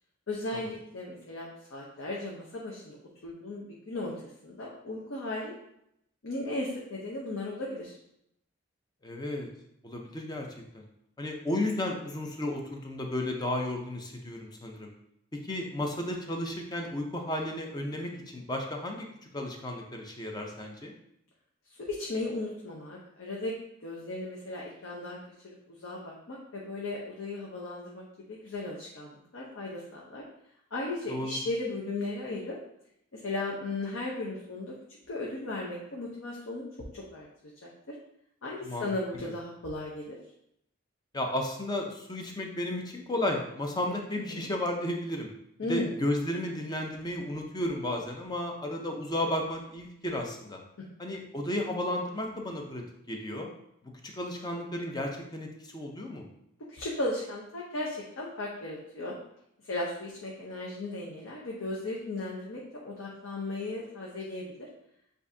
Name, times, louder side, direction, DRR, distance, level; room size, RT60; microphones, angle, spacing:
voice 1, 0.3-3.0 3.2-5.5 6.2-8.0 21.7-23.6 23.8-25.2 25.4-30.2 30.7-32.6 33.1-37.9 38.4-40.2 44.3-44.5 45.6-45.9 50.8-50.9 56.7-59.2 59.6-64.7, left 2 dB, 65° left, -3 dB, 0.7 m, -36 dB
voice 2, 9.0-9.5 9.8-10.5 10.7-10.9 11.2-14.9 15.3-19.0 19.3-20.9 31.1-31.4 38.6-38.9 39.2-39.3 41.1-45.3 45.7-50.6 51.0-53.5 54.1-56.2, left 1 dB, 20° left, 2 dB, 0.5 m, -33 dB
7.1 x 2.6 x 2.7 m, 0.78 s
head